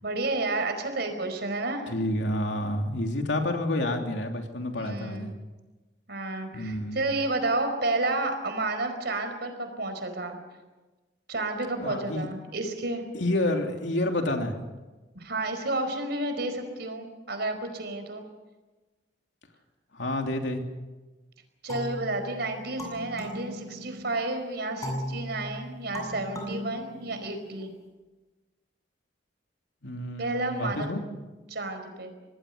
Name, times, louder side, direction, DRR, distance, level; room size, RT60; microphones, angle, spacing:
voice 1, 0.0-1.8 4.7-5.3 6.1-10.4 11.3-13.0 15.1-18.2 21.6-27.7 30.2-30.9 31.5-32.1, right 2 dB, 65° right, 6 dB, 4.8 m, -31 dB
voice 2, 1.9-5.3 6.5-7.0 11.8-12.3 13.1-14.6 19.9-20.6 29.8-31.0, left 1 dB, 75° left, 3 dB, 3.0 m, -29 dB
sound 1, 21.7-24.2 24.8-27.6, equal, 20° left, 7.9 m, -38 dB
26.5 x 19.0 x 6.7 m, 1.2 s
head